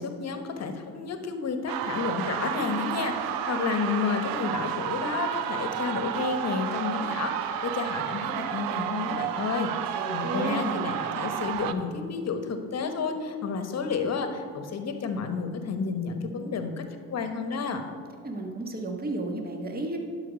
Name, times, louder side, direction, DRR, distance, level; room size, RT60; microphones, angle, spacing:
voice 1, 0.0-17.8, left 5 dB, 45° left, 7 dB, 1.1 m, -31 dB
sound 1, 1.7-11.7, right 10 dB, 65° right, 0.6 m, -31 dB
voice 2, 9.9-10.9 18.2-20.0, right 2 dB, 25° right, 2 dB, 1.4 m, -32 dB
11.5 x 4.9 x 5.2 m, 2.1 s
hypercardioid pair, 65°, 37 cm